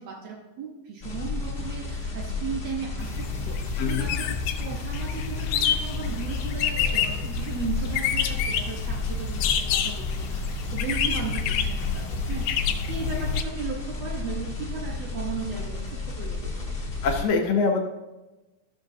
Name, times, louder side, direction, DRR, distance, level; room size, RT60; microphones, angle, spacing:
voice 1, 0.0-16.9, right 6 dB, 80° right, -1 dB, 1.5 m, -36 dB
sound 1, 1.0-17.2, left 3 dB, 35° left, 0.9 m, -33 dB
sound 2, 3.0-13.4, left 7 dB, 90° left, 2.6 m, -28 dB
voice 2, 17.0-17.8, left 4 dB, 75° left, 1 dB, 2.3 m, -23 dB
15.0 x 6.3 x 2.7 m, 1.1 s
omnidirectional pair, 4.4 m